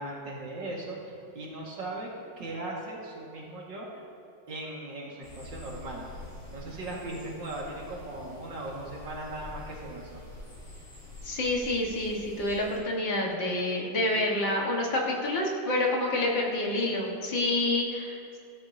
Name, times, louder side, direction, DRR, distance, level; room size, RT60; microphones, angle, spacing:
voice 1, 0.0-2.1 2.4-3.9 4.5-10.2, right 2 dB, 60° right, -3 dB, 2.6 m, -38 dB
sound 1, 5.2-12.8, left 2 dB, 35° left, 3.2 m, -46 dB
voice 2, 11.2-18.4, left 1 dB, 65° left, -2 dB, 2.3 m, -28 dB
17.0 x 12.5 x 2.8 m, 2.6 s
omnidirectional pair, 2.2 m